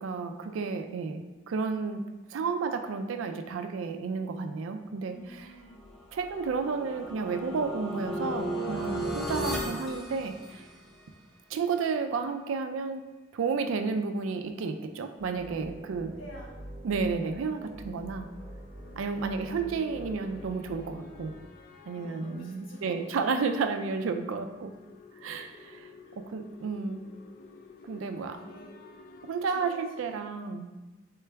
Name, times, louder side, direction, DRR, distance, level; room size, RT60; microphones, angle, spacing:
voice 1, 0.0-2.0 2.3-5.5 6.1-10.7 11.5-13.0 13.3-16.1 16.8-18.3 19.0-21.3 21.9-24.7 25.2-25.9 26.3-27.0 27.8-28.4 29.2-30.7, right 4 dB, 90° right, 7 dB, 0.4 m, -32 dB
voice 2, 5.1-5.8 16.1-16.6 18.8-19.0 21.9-23.3 25.3-25.5 26.0-26.2 28.3-28.8 29.5-30.4, equal, 80° left, -1 dB, 0.9 m, -49 dB
sound 1, 5.7-10.9, equal, ahead, 0.6 m, -35 dB
sound 2, 15.2-21.5, right 1 dB, 45° right, 0.6 m, -46 dB
sound 3, 17.1-29.5, left 4 dB, 45° left, 0.3 m, -53 dB
3.8 x 3.4 x 3.3 m, 1.1 s
head